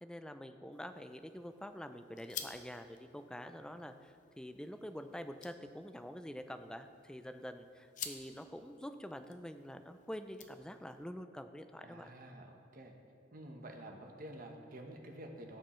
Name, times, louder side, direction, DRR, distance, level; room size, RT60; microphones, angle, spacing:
voice 1, 0.0-12.1, equal, 5° left, 8 dB, 0.3 m, -46 dB
sound 1, 0.7-11.0, left 7 dB, 45° left, 0.6 m, -52 dB
voice 2, 11.8-13.0 13.3-15.6, right 1 dB, 50° right, 3 dB, 1.0 m, -49 dB
15.0 x 6.6 x 3.1 m, 2.3 s
head